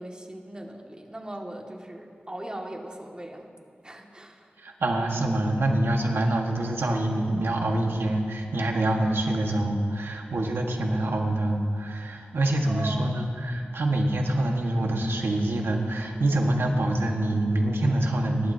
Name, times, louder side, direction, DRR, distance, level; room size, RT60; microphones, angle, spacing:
voice 1, 0.0-3.5 3.8-4.5 12.7-13.3, right 1 dB, 25° right, 0 dB, 2.0 m, -39 dB
voice 2, 4.6-18.5, right 1 dB, 85° right, 1 dB, 1.6 m, -25 dB
26.5 x 12.0 x 2.8 m, 2.2 s
cardioid pair, 50°, 4 cm